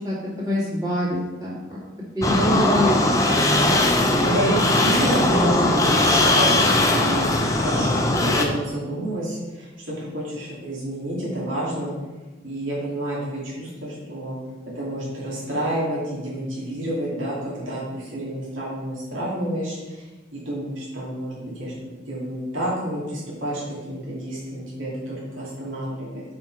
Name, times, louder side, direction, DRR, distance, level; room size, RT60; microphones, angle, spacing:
voice 1, 0.0-1.8 2.1-2.4 2.6-3.2, left 1 dB, 20° right, -7 dB, 2.2 m, -26 dB
sound 1, 2.2-8.5, left 2 dB, 15° left, 0.6 m, -19 dB
voice 2, 2.3-2.7 4.2-11.9 12.4-14.4 14.7-20.1 20.3-21.7 22.1-23.6 23.9-26.2, right 1 dB, 85° right, -7 dB, 2.4 m, -29 dB
7.0 x 5.1 x 4.6 m, 1.2 s
head